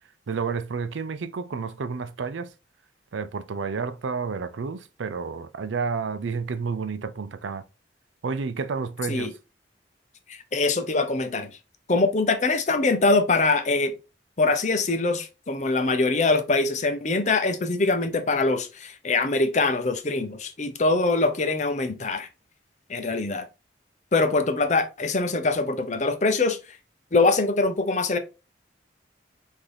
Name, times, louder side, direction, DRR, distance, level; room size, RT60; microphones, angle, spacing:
voice 1, 0.3-2.5 3.1-7.6 8.2-9.3, right 5 dB, 90° right, 0.5 m, -30 dB
voice 2, 10.3-11.6 11.9-13.9 14.4-22.3 22.9-23.5 24.1-26.8 27.1-28.2, left 3 dB, 40° left, 0.6 m, -23 dB
5.8 x 2.7 x 3.3 m
head